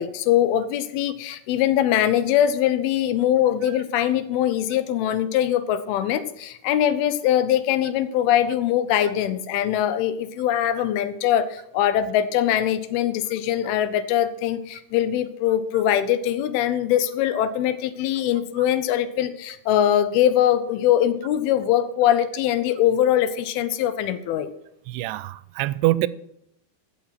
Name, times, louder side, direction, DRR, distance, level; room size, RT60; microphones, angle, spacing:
voice 1, 0.0-24.5, left 11 dB, 80° left, 2.5 m, -22 dB
voice 2, 24.9-26.1, right 17 dB, 90° right, 2.6 m, -24 dB
14.5 x 6.3 x 5.9 m
omnidirectional pair, 4.6 m